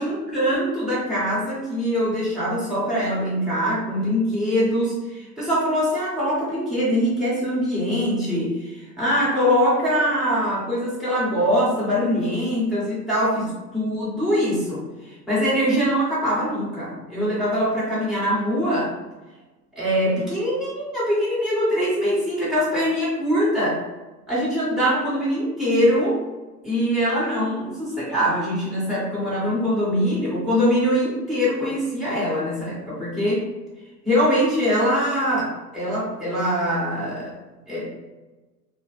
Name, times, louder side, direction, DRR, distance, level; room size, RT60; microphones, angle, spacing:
voice 1, 0.0-14.8 15.3-18.9 19.8-23.8 24.3-26.2 26.6-33.5 34.0-37.3 37.7-37.9, equal, ahead, -10 dB, 1.1 m, -23 dB
3.4 x 2.1 x 3.0 m, 1.2 s
figure-of-eight pair, 100°, 50 cm